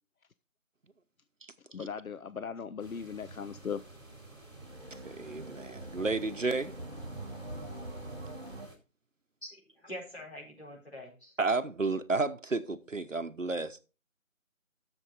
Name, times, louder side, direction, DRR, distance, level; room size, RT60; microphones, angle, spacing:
voice 1, 1.7-3.8, left 6 dB, 80° left, 0.6 m, -38 dB
sound 1, 2.8-8.7, right 2 dB, 20° right, 3.0 m, -47 dB
sound 2, 4.5-8.7, right 1 dB, 45° right, 1.2 m, -47 dB
voice 2, 4.9-6.7 11.4-13.8, right 3 dB, 65° right, 1.1 m, -32 dB
voice 3, 9.4-11.4, equal, 50° left, 4.5 m, -45 dB
11.0 x 7.1 x 4.0 m
figure-of-eight pair, 175°, 41 cm